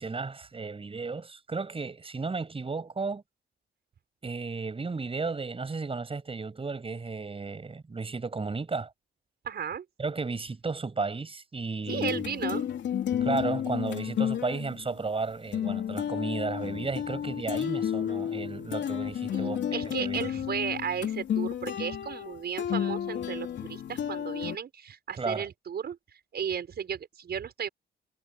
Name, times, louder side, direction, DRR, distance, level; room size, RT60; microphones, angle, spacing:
voice 1, 0.0-3.2 4.2-8.9 10.0-12.2 13.2-20.3 25.2-25.5, right 4 dB, 30° right, 7.9 m, -34 dB
voice 2, 9.4-9.9 11.9-12.6 19.3-26.0 26.3-27.7, right 8 dB, 55° right, 5.7 m, -34 dB
sound 1, 11.9-14.9 15.5-24.6, left 9 dB, 65° left, 3.4 m, -31 dB
cardioid pair, 90°, 20 cm